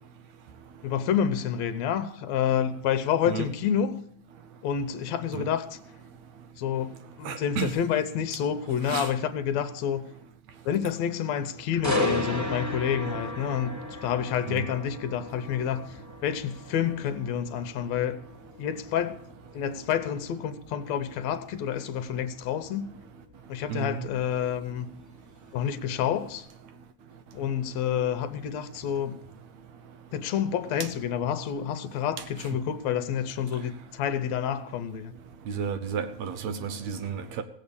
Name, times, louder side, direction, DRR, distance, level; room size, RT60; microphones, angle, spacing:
voice 1, 0.8-4.0 4.6-5.8 6.6-10.0 10.7-18.2 18.6-19.2 19.5-22.9 23.5-24.9 25.5-26.5 27.3-29.2 30.1-35.1, left 9 dB, 70° left, 2.0 m, -29 dB
voice 2, 7.3-7.7 8.9-9.1 14.5-14.7 23.7-24.0 35.5-37.4, right 7 dB, 70° right, 2.1 m, -32 dB
sound 1, 11.8-25.7 26.1-26.4, left 1 dB, 10° right, 1.1 m, -36 dB
16.5 x 7.9 x 7.0 m
omnidirectional pair, 3.4 m